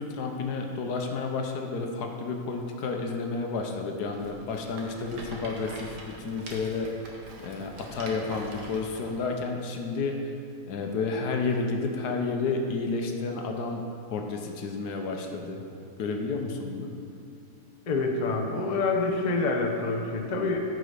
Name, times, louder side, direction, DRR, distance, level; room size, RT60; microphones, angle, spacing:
voice 1, 0.0-10.4 10.7-13.8 14.1-15.6 16.0-16.9, left 4 dB, 70° left, 3 dB, 1.3 m, -31 dB
Rattle, 4.1-9.2, right 2 dB, 85° right, 1.8 m, -44 dB
voice 2, 17.9-20.6, left 3 dB, 35° left, 1 dB, 0.8 m, -27 dB
14.0 x 5.0 x 5.0 m, 2.4 s
omnidirectional pair, 1.8 m